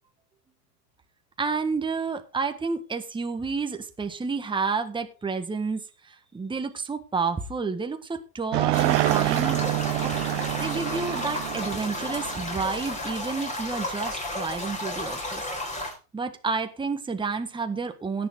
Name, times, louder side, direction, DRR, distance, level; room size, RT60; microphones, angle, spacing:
voice 1, 1.4-9.6 10.0-10.1 10.5-15.4 16.1-18.3, right 4 dB, 10° right, 7 dB, 1.5 m, -30 dB
sound 1, 8.5-12.9, right 24 dB, 50° right, 0.6 m, -27 dB
sound 2, 8.7-15.9, left 1 dB, 15° left, 3.7 m, -33 dB
17.5 x 7.0 x 3.8 m, 0.31 s
hypercardioid pair, 110°, 48 cm